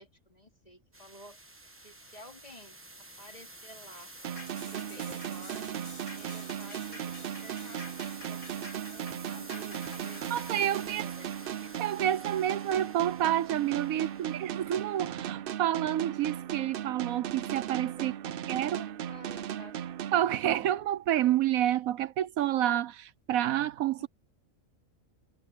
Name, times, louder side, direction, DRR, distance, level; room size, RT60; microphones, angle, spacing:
voice 1, 0.0-1.4 1.8-2.8 3.2-5.8 6.2-10.2 10.6-11.4 13.9-14.3 18.0-18.3 18.6-19.8 24.0-24.1, equal, 30° left, 3.1 m, -52 dB
sound 1, 0.9-15.1, right 1 dB, 10° right, 1.0 m, -50 dB
sound 2, 4.2-20.8, right 10 dB, 65° right, 0.5 m, -37 dB
sound 3, 4.4-13.1 13.5-13.6, left 2 dB, 85° left, 8.1 m, -50 dB
voice 2, 10.3-11.0 11.8-18.1 18.5-18.8 20.1-24.1, right 12 dB, 85° right, 1.1 m, -29 dB
omnidirectional pair, 1.4 m